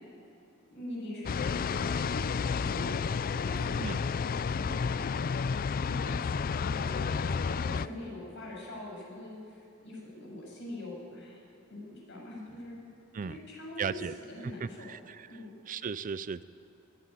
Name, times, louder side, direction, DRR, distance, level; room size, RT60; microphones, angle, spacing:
voice 1, 0.7-2.9 3.4-3.8 4.3-5.2 5.8-11.4 11.7-11.8 12.1-12.8 13.2-14.0 14.3-14.9 15.3-15.5, left 1 dB, 60° left, -3 dB, 7.1 m, -43 dB
sound 1, 1.2-7.9, left 5 dB, 45° left, 0.4 m, -31 dB
voice 2, 13.8-14.1 14.4-15.3 15.7-16.4, right 6 dB, 40° right, 16 dB, 0.4 m, -36 dB
22.0 x 11.5 x 10.0 m, 2.5 s
head